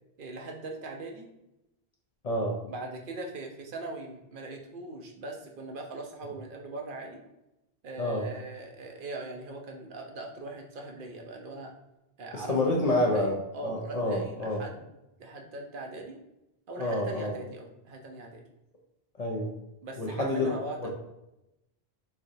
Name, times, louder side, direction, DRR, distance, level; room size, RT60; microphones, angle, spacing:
voice 1, 0.2-1.3 2.7-7.2 7.8-11.7 12.2-14.9 15.2-16.2 16.7-18.4 19.8-20.9, right 2 dB, 60° right, 2 dB, 0.7 m, -40 dB
voice 2, 2.2-2.6 8.0-8.3 12.3-14.6 16.8-17.4 19.2-19.5 20.0-20.9, left 1 dB, 50° left, -1 dB, 0.5 m, -28 dB
3.8 x 3.2 x 2.6 m, 0.91 s
omnidirectional pair, 1.1 m